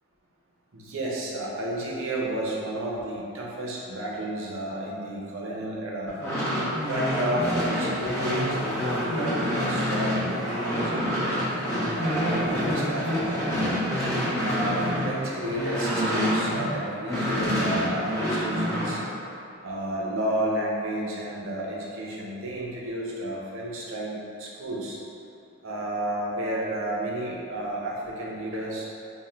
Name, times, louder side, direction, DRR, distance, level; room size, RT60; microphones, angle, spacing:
voice 1, 0.7-6.1 6.9-11.3 11.9-13.4 14.4-19.0 19.6-25.0 25.6-28.9, right 1 dB, 65° right, -3 dB, 0.6 m, -31 dB
sound 1, 6.1-16.7 17.1-19.0, equal, 10° left, 0.8 m, -27 dB
3.6 x 2.2 x 4.3 m, 2.7 s
head